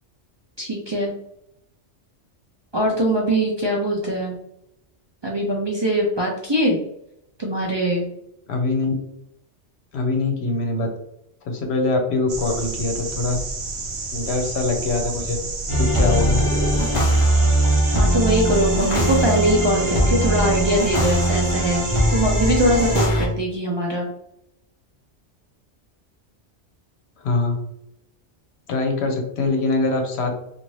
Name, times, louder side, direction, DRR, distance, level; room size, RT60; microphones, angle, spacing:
voice 1, 0.6-1.1 2.7-4.4 5.2-6.8 7.4-8.1 17.9-24.1, right 1 dB, 45° right, -2 dB, 0.3 m, -22 dB
voice 2, 8.5-8.9 9.9-10.9 11.4-13.4 14.1-15.4 15.8-16.4 27.2-27.6 28.7-30.4, left 3 dB, 70° left, 3 dB, 1.0 m, -23 dB
sound 1, 12.3-23.1, right 3 dB, 75° right, 0.9 m, -30 dB
sound 2, 15.7-23.3, right 1 dB, 35° left, 0.6 m, -20 dB
2.7 x 2.5 x 3.1 m, 0.79 s
omnidirectional pair, 1.2 m